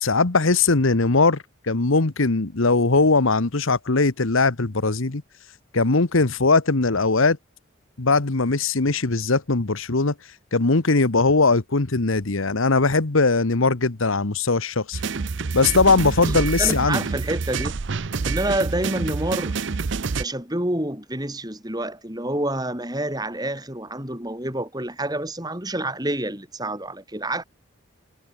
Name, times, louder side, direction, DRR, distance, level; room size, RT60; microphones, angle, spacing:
voice 1, 0.0-5.2 5.7-7.4 8.0-10.1 10.5-15.0 15.5-17.0, left 3 dB, 75° left, 1.3 m, -20 dB
sound 1, 14.9-20.2, right 4 dB, 60° right, 0.6 m, -27 dB
voice 2, 16.2-17.7 18.3-19.5 20.2-27.4, right 1 dB, 20° right, 6.1 m, -28 dB
head